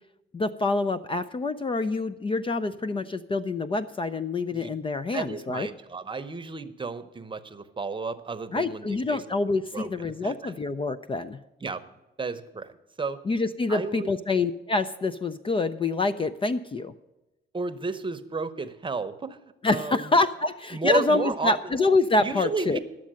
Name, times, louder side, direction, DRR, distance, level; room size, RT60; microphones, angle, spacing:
voice 1, 0.3-5.7 8.5-11.4 13.3-16.9 19.6-22.8, left 3 dB, 25° left, 12 dB, 0.4 m, -26 dB
voice 2, 5.1-9.4 9.7-10.5 11.6-11.8 12.2-13.2 13.7-14.1 17.5-20.1 20.7-21.7 22.2-22.8, right 4 dB, 25° right, 10 dB, 0.9 m, -33 dB
11.5 x 7.4 x 7.5 m, 1.0 s
cardioid pair, 90°, 20 cm